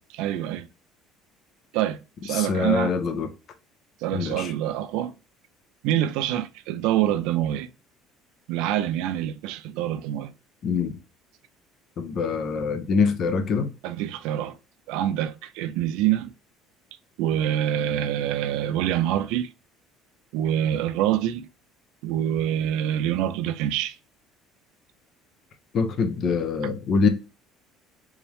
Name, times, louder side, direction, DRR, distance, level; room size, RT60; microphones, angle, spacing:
voice 1, 0.2-0.7 1.7-3.0 4.0-5.1 5.8-7.7 8.5-10.3 13.8-14.6 14.9-16.3 17.2-19.5 20.3-21.5 22.0-24.0, right 11 dB, 70° right, 0.4 m, -26 dB
voice 2, 2.3-3.3 4.1-4.5 10.6-11.0 12.0-13.7 25.7-27.1, left 5 dB, 30° left, 0.4 m, -24 dB
3.5 x 3.2 x 3.0 m
cardioid pair, 175°, 0 cm